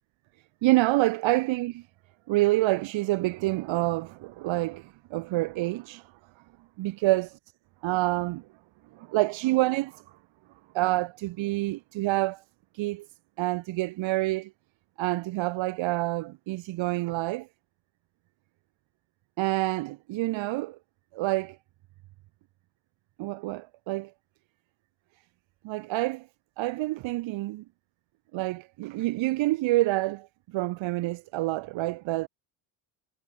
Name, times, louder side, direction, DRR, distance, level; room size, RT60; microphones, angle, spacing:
voice 1, 0.6-1.9 2.3-6.1 6.8-7.4 7.8-8.5 8.9-10.0 10.7-12.4 12.7-13.1 13.4-14.5 15.0-17.5 19.4-20.8 21.1-21.6 23.2-24.1 25.6-26.3 26.6-27.6 28.3-32.3, right 18 dB, 65° right, 4.5 m, -27 dB
cardioid pair, 155°, 49 cm